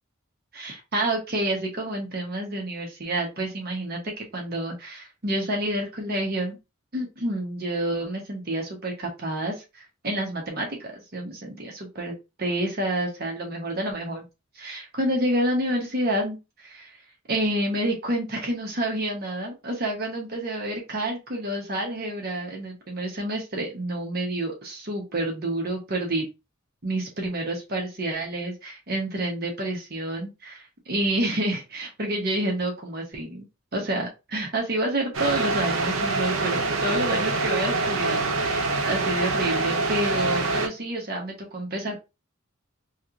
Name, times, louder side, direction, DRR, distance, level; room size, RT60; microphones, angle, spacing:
voice 1, 0.5-6.6 6.9-12.1 12.4-14.2 14.6-17.0 17.3-26.3 26.8-33.4 33.7-42.0, right 1 dB, 50° right, 1 dB, 1.0 m, -29 dB
sound 1, 35.1-40.7, right 3 dB, 85° right, 0.7 m, -25 dB
3.1 x 2.8 x 2.5 m, 0.26 s
head